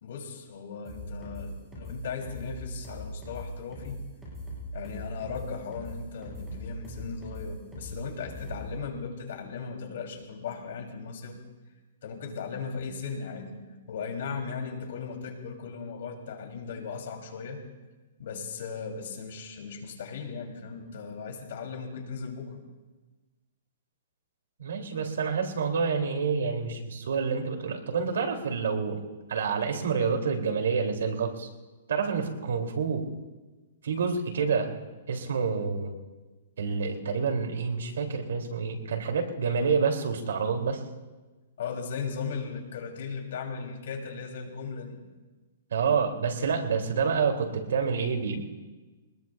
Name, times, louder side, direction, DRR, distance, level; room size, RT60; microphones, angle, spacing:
voice 1, 0.0-4.0 4.7-11.4 12.0-13.6 13.9-17.6 18.2-22.6 41.6-45.0, left 5 dB, 60° left, 3 dB, 2.9 m, -37 dB
sound 1, 0.8-8.7, equal, 5° right, 6.8 m, -40 dB
voice 2, 24.6-29.0 29.3-31.5 31.9-33.1 33.8-34.8 35.1-35.9 36.6-40.8 45.7-48.4, right 5 dB, 80° right, 3 dB, 2.7 m, -28 dB
23.5 x 20.5 x 2.3 m, 1.2 s
hypercardioid pair, 170°, 0 cm